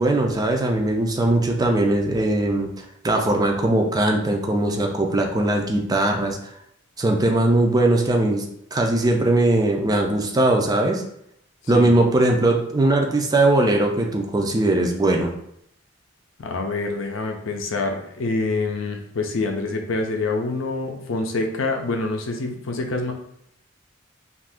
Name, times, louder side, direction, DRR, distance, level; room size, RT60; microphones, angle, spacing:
voice 1, 0.0-6.4 7.0-8.4 8.7-11.0 11.7-15.3, right 2 dB, 20° right, 2 dB, 0.4 m, -20 dB
voice 2, 16.4-23.1, left 3 dB, 75° left, 3 dB, 0.5 m, -26 dB
2.7 x 2.5 x 3.4 m, 0.73 s
head